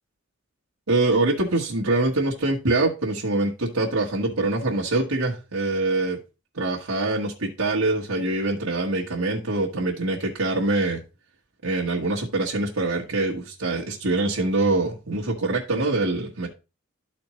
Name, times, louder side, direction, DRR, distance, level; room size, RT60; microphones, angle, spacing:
voice 1, 0.9-6.2 6.5-11.0 11.6-16.5, right 2 dB, 75° right, -4 dB, 1.4 m, -24 dB
13.0 x 4.4 x 3.1 m, 0.29 s
head